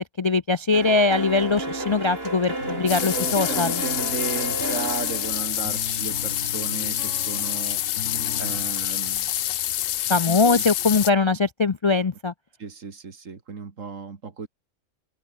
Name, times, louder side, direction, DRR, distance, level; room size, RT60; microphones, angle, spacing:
voice 1, 0.2-3.8 10.1-12.3, left 4 dB, 50° left, 0.3 m, -21 dB
sound 1, 0.7-6.5, right 2 dB, 50° right, 5.2 m, -32 dB
sound 2, 2.6-8.7, left 2 dB, 65° left, 4.8 m, -39 dB
sound 3, 2.9-11.1, left 12 dB, 85° left, 1.1 m, -27 dB
voice 2, 3.0-7.8 8.1-9.3 10.2-10.6 12.6-14.5, right 5 dB, 80° right, 2.4 m, -35 dB
open air
omnidirectional pair, 1.3 m